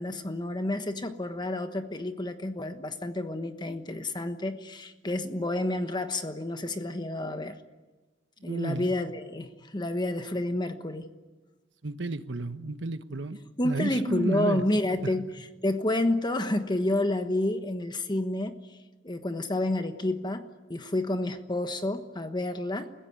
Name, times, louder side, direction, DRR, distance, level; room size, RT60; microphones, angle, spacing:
voice 1, 0.0-7.6 8.4-11.1 13.6-15.3 15.6-18.8 19.0-22.9, left 1 dB, 25° left, 8 dB, 1.2 m, -30 dB
voice 2, 8.4-8.9 11.8-14.6 15.2-15.3, right 2 dB, 70° right, 10 dB, 1.2 m, -32 dB
29.5 x 16.0 x 9.5 m, 1.2 s
head